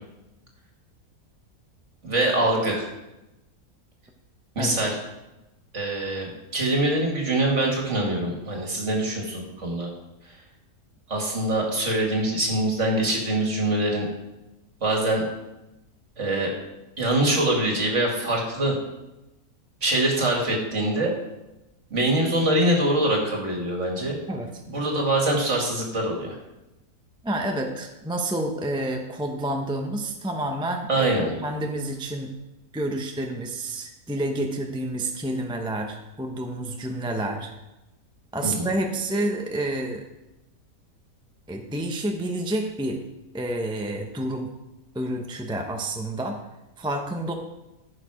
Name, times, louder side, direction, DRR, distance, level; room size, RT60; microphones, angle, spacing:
voice 1, 2.0-2.8 4.6-5.0 5.7-9.9 11.1-14.1 14.8-15.2 16.2-16.5 17.0-18.8 19.8-21.1 21.9-24.2 24.7-26.4 30.9-31.3 38.4-38.7, right 1 dB, 55° right, 0 dB, 2.6 m, -24 dB
voice 2, 24.3-24.6 27.2-31.1 31.4-32.3 32.7-37.5 38.3-40.0 41.5-43.0 43.3-44.5 44.9-46.4 46.8-47.3, right 1 dB, 5° right, 3 dB, 0.8 m, -29 dB
14.5 x 6.6 x 5.0 m, 0.98 s
omnidirectional pair, 1.5 m